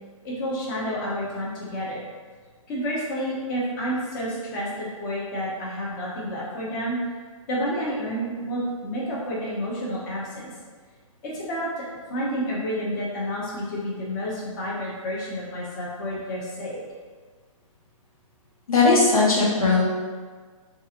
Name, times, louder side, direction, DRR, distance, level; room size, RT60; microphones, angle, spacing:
voice 1, 0.2-2.1 2.7-7.0 7.5-10.5 11.2-11.8 12.1-16.8, equal, 35° left, -5 dB, 0.8 m, -30 dB
voice 2, 18.7-19.8, left 3 dB, 90° left, -5 dB, 1.2 m, -18 dB
3.8 x 2.5 x 2.8 m, 1.5 s
hypercardioid pair, 145°, 18 cm